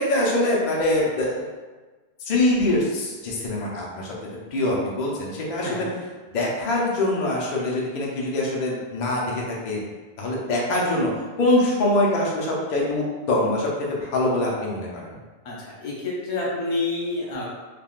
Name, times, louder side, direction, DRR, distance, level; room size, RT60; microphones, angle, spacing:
voice 1, 0.0-1.5 2.2-4.1 4.5-5.9 6.3-9.8 10.2-11.1 11.4-15.2, left 1 dB, 50° left, -4 dB, 0.6 m, -24 dB
voice 2, 15.4-17.5, left 2 dB, 85° left, -5 dB, 1.1 m, -28 dB
3.5 x 2.2 x 2.4 m, 1.3 s
omnidirectional pair, 1.1 m